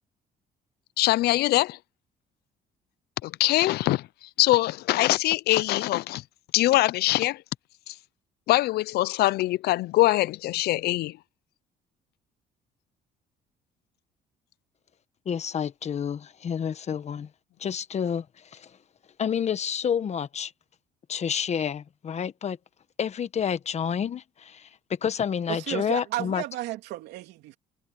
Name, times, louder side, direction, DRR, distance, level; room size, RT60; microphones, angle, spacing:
voice 1, 1.0-1.8 3.2-4.1 4.4-6.2 6.5-7.4 7.9-8.0 8.5-11.1, left 17 dB, 70° left, 0.5 m, -23 dB
voice 2, 15.2-17.3 17.6-18.7 19.2-20.5 21.1-22.6 23.0-26.4, left 8 dB, 40° left, 1.2 m, -29 dB
voice 3, 25.5-27.6, right 16 dB, 90° right, 2.9 m, -33 dB
cardioid pair, 110°, 17 cm